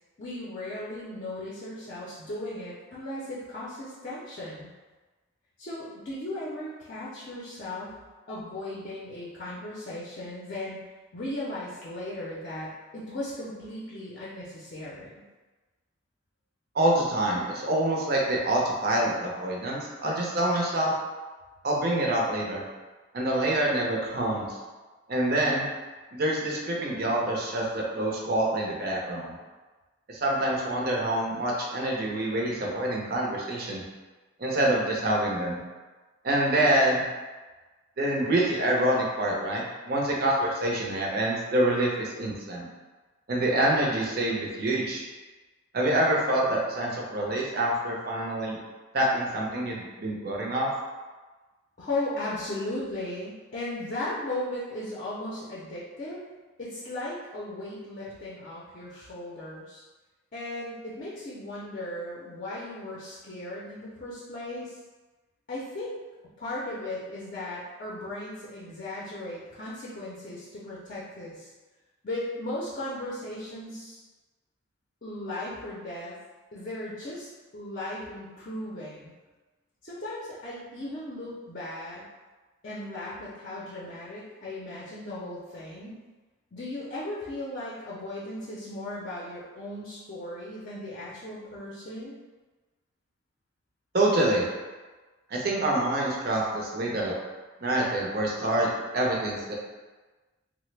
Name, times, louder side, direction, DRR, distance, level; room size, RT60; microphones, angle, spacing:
voice 1, 0.2-4.7 5.6-7.9 8.3-10.8 11.1-15.1 51.8-56.2 56.6-59.8 60.3-64.7 65.5-65.9 66.4-71.5 72.0-74.0 75.0-76.2 76.5-77.3 77.5-79.1 79.8-82.0 82.6-85.9 86.5-92.2, left 1 dB, 40° left, -7 dB, 0.5 m, -36 dB
voice 2, 16.7-20.9 21.6-22.6 23.1-24.6 25.1-25.7 26.1-29.4 30.1-33.8 34.4-35.6 36.2-37.0 38.0-42.7 43.3-45.0 45.7-48.6 48.9-50.7 93.9-94.4 95.3-97.1 97.6-99.5, right 1 dB, 50° right, -2 dB, 0.6 m, -26 dB
3.1 x 2.0 x 3.2 m, 1.3 s
head